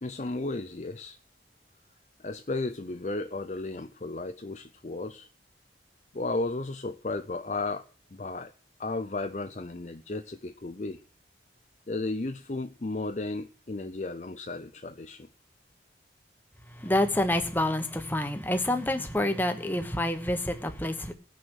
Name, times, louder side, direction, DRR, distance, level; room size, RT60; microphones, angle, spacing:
voice 1, 0.0-1.2 2.2-5.3 6.1-7.8 8.1-8.5 8.8-11.0 11.9-15.3, left 2 dB, 40° left, 0.6 m, -34 dB
voice 2, 16.7-21.1, left 1 dB, 10° left, 1.2 m, -28 dB
19.0 x 6.3 x 6.4 m
head